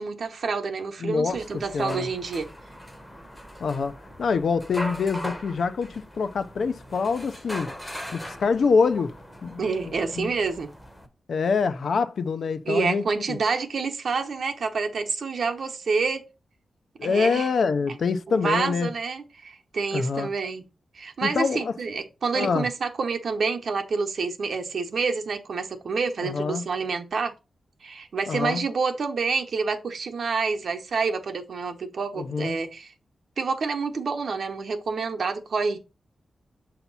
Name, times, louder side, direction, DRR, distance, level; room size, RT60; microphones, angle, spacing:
voice 1, 0.0-2.5 9.6-10.7 12.7-16.2 17.0-17.5 18.3-20.7 20.9-27.3 27.8-32.9 33.4-35.8, right 4 dB, 60° right, 0.9 m, -28 dB
voice 2, 1.0-2.1 3.6-7.7 8.1-9.1 9.4-10.3 11.3-13.4 17.0-18.9 19.9-20.3 21.2-21.7 22.3-22.7 26.2-26.6 28.3-28.6 32.2-32.6, left 5 dB, 65° left, 0.5 m, -25 dB
sound 1, 1.3-11.1, equal, 5° left, 0.8 m, -40 dB
7.0 x 2.9 x 5.4 m
wide cardioid pair, 175°, 0 cm